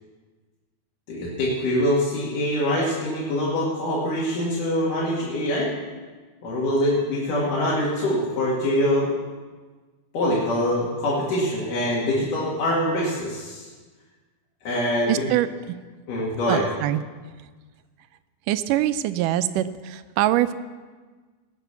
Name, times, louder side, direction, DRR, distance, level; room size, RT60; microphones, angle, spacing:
voice 1, 1.1-5.7 6.4-9.1 10.1-13.7 14.7-15.3 16.1-16.6, left 1 dB, 85° left, -6 dB, 3.7 m, -24 dB
voice 2, 15.1-15.5 16.5-17.0 18.5-20.5, right 13 dB, 90° right, 12 dB, 2.2 m, -23 dB
18.0 x 6.9 x 6.9 m, 1.4 s
omnidirectional pair, 3.6 m